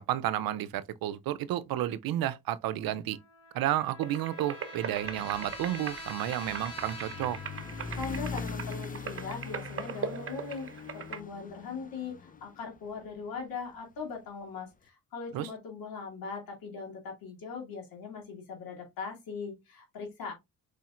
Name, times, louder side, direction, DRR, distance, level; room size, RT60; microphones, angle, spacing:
voice 1, 0.0-3.2 3.5-7.4 15.3-15.5, right 12 dB, 85° right, 0.6 m, -31 dB
Trumpet, 3.1-8.2, left 3 dB, 45° left, 2.5 m, -46 dB
sound 1, 4.0-11.2, right 6 dB, 40° right, 0.8 m, -40 dB
sound 2, 4.9-13.3, left 5 dB, 25° left, 0.5 m, -42 dB
voice 2, 7.9-20.3, left 5 dB, 85° left, 2.4 m, -40 dB
4.9 x 4.2 x 2.4 m
cardioid pair, 70°, 34 cm